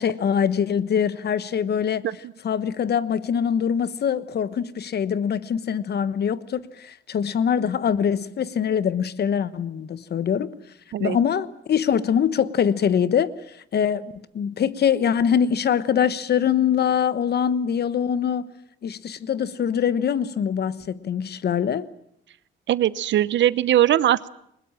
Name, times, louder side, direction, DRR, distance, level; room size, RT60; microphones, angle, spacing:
voice 1, 0.0-2.1 2.4-10.6 11.0-18.5 18.8-21.9, left 8 dB, 55° left, 1.2 m, -23 dB
voice 2, 22.7-24.3, right 12 dB, 65° right, 0.9 m, -20 dB
22.0 x 20.5 x 9.0 m
cardioid pair, 90°, 20 cm